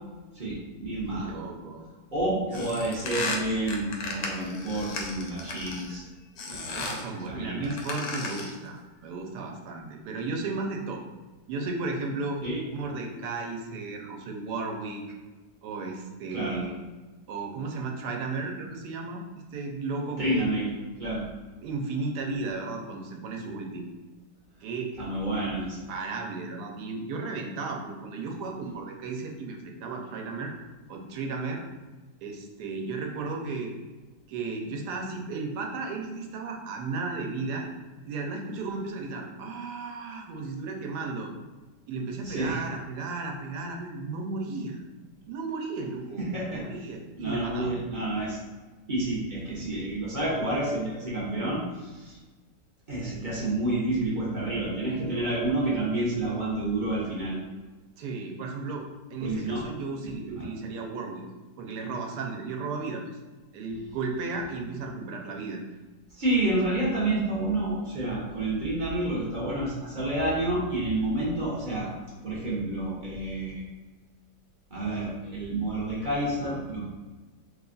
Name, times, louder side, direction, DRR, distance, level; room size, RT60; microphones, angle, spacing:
voice 1, 0.3-1.4 2.1-6.0 6.4-7.7 12.4-12.6 16.3-16.6 20.2-20.7 21.0-21.2 25.0-25.8 42.2-42.6 46.2-46.7 47.2-48.4 48.9-52.2 52.9-57.3 59.2-59.7 60.0-60.5 66.1-71.9 72.2-73.6 74.7-76.9, right 1 dB, 45° right, -7 dB, 0.7 m, -29 dB
voice 2, 1.1-1.9 2.5-2.6 6.7-11.0 11.5-12.4 12.7-15.0 15.6-16.8 17.3-19.2 19.5-20.5 21.6-23.9 24.6-24.9 25.9-30.5 30.9-31.6 32.2-33.7 34.3-37.7 38.0-41.3 41.9-44.8 45.3-47.7 58.0-61.2 61.6-63.0 63.5-65.6, right 3 dB, 75° right, 2 dB, 1.1 m, -34 dB
sound 1, 2.5-6.0 6.4-7.1 7.6-8.6, left 3 dB, 90° left, 1.3 m, -35 dB
3.3 x 2.3 x 3.8 m, 1.2 s
omnidirectional pair, 1.9 m